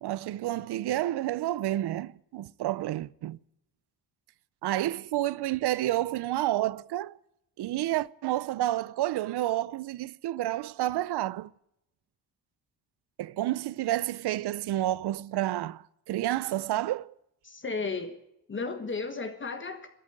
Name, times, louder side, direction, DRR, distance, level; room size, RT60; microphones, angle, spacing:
voice 1, 0.0-3.4 4.6-7.2 7.6-11.5 13.2-17.1, right 14 dB, 80° right, 0.7 m, -30 dB
voice 2, 17.4-18.1 18.5-19.9, left 4 dB, 30° left, 1.5 m, -34 dB
13.5 x 12.5 x 8.2 m
cardioid pair, 140°, 39 cm